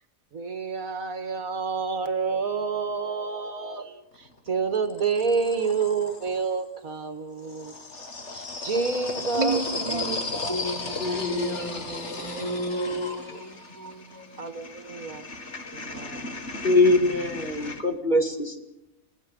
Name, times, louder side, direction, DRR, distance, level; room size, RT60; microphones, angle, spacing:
voice 1, 0.3-4.0 4.5-7.7 8.3-9.6 9.9-10.1 10.4-10.5 11.1-11.2 12.1-12.4 14.4-15.2 15.7-16.3, right 5 dB, 75° right, 9 dB, 2.2 m, -29 dB
sound 1, 4.1-6.6 7.4-17.8, left 3 dB, 55° left, 2.3 m, -36 dB
voice 2, 9.4-14.3, right 2 dB, 25° right, 1 dB, 3.5 m, -32 dB
voice 3, 11.0-14.3 16.6-18.6, left 2 dB, 35° left, 4 dB, 2.5 m, -26 dB
30.0 x 18.0 x 5.4 m, 0.84 s
omnidirectional pair, 1.5 m